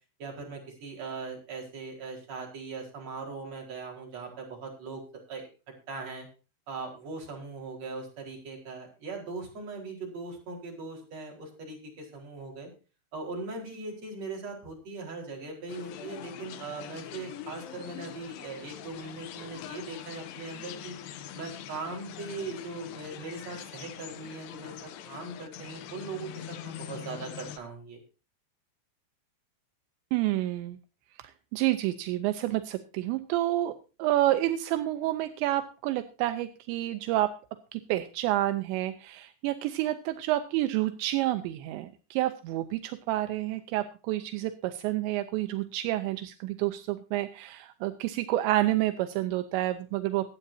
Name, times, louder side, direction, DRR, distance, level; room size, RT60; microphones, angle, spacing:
voice 1, 0.2-5.0 5.3-5.5 5.9-6.3 6.7-12.7 13.1-21.0 21.3-24.8 25.1-28.0, right 3 dB, 35° right, 0 dB, 5.3 m, -40 dB
sound 1, 15.7-27.6, left 10 dB, 70° left, 2.4 m, -43 dB
voice 2, 30.1-30.8 31.2-37.3 37.7-50.3, right 15 dB, 85° right, 9 dB, 3.0 m, -29 dB
22.5 x 8.7 x 2.7 m, 0.33 s
omnidirectional pair, 5.1 m